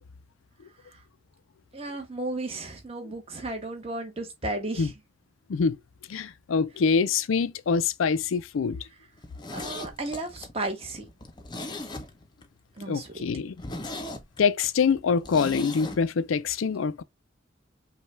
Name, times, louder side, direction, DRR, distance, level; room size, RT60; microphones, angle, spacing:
voice 1, 1.7-4.9 9.5-11.0 12.8-13.2, right 2 dB, 30° right, 1.1 m, -34 dB
voice 2, 6.1-8.8 12.9-13.5 14.4-17.0, left 5 dB, 90° left, 0.4 m, -25 dB
Zipper (clothing), 9.2-12.5 12.8-12.9 13.2-13.3 13.6-16.0 16.3-16.4, left 2 dB, 20° left, 0.6 m, -38 dB
5.4 x 2.3 x 3.1 m
head